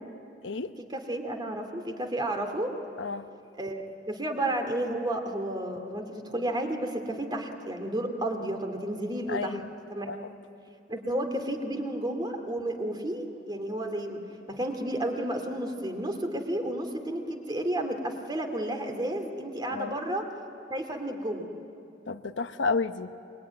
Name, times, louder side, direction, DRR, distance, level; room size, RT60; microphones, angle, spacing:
voice 1, 0.9-2.7 3.6-9.6 9.9-10.1 10.9-14.2 14.5-20.2 20.7-21.5, right 1 dB, 25° right, 5 dB, 2.5 m, -32 dB
voice 2, 3.0-3.3 9.3-9.6 10.1-10.3 19.7-19.9 22.1-23.1, left 4 dB, 85° left, 10 dB, 0.9 m, -31 dB
25.5 x 22.5 x 9.5 m, 2.7 s
head